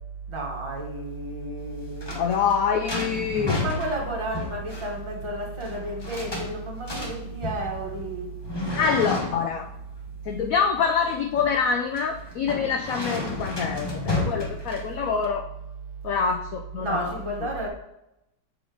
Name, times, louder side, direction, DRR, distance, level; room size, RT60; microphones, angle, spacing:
voice 1, 0.3-2.1 3.6-8.3 16.8-17.7, right 2 dB, 15° right, -1 dB, 1.4 m, -32 dB
sound 1, 1.6-15.2, left 2 dB, 15° left, 0.9 m, -33 dB
voice 2, 2.1-3.6 8.8-9.7 10.3-15.5 16.0-17.1, left 6 dB, 70° left, 4 dB, 0.8 m, -25 dB
7.8 x 3.9 x 4.9 m, 0.85 s
omnidirectional pair, 2.0 m